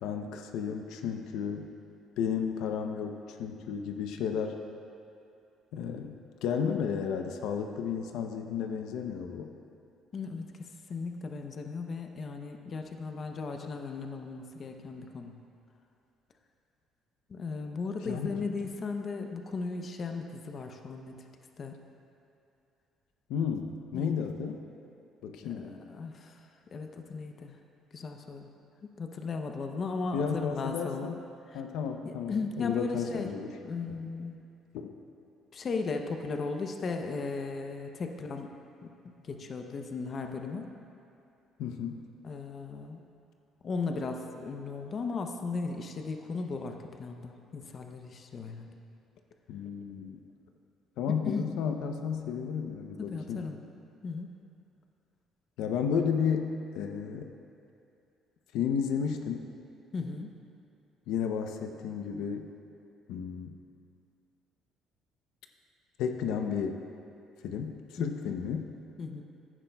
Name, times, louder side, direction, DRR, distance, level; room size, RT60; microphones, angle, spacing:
voice 1, 0.0-1.7 2.2-4.6 5.7-9.5 18.0-18.3 23.3-24.6 25.2-25.8 30.1-31.2 31.5-33.5 33.9-34.0 34.7-34.9 41.6-42.0 49.5-50.2 51.0-53.4 55.6-57.3 58.5-59.4 61.1-62.5 63.1-63.6 66.0-66.8 67.4-68.6, left 7 dB, 80° left, 5 dB, 0.6 m, -33 dB
voice 2, 10.1-15.4 17.3-21.2 21.6-21.8 23.9-24.2 25.4-26.4 26.7-27.6 27.9-28.5 29.0-31.2 31.5-31.6 32.0-33.3 33.6-34.4 35.5-38.5 38.8-40.7 42.2-43.0 43.6-48.8 51.1-51.5 53.0-53.6 54.0-54.4 59.9-60.4 68.0-68.4 69.0-69.2, left 4 dB, 35° left, 4 dB, 0.6 m, -36 dB
15.0 x 10.5 x 2.3 m, 2.6 s
cardioid pair, 135°, 0 cm